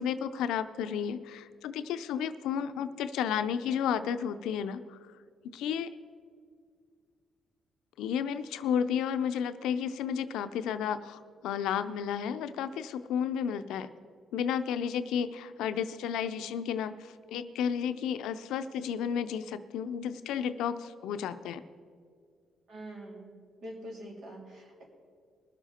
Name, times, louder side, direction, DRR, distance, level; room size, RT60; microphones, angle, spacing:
voice 1, 0.0-5.0 5.4-5.9 8.0-13.9 14.3-21.6, left 8 dB, 90° left, 11 dB, 0.5 m, -32 dB
voice 2, 22.7-23.3 23.6-24.9, right 1 dB, 70° right, -2 dB, 3.4 m, -44 dB
20.5 x 7.1 x 4.3 m, 2.1 s
cardioid pair, 90°, 0 cm